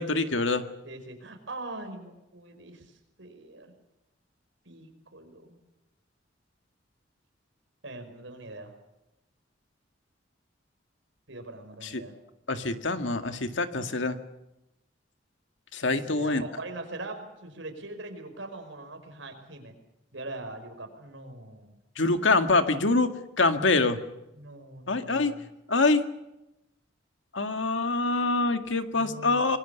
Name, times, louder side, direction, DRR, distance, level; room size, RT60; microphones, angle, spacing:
voice 1, 0.0-0.6 11.8-12.0 12.5-14.2 15.7-16.4 22.0-23.1 23.4-24.0 24.9-25.3 25.7-26.0 27.3-29.6, left 3 dB, 85° left, 8 dB, 1.9 m, -25 dB
voice 2, 0.8-3.7 4.6-5.6 7.8-8.8 11.3-12.2 15.9-19.7 20.1-21.8 24.3-25.4 28.9-29.6, right 2 dB, 85° right, 6 dB, 5.3 m, -42 dB
25.5 x 21.5 x 7.0 m, 0.93 s
head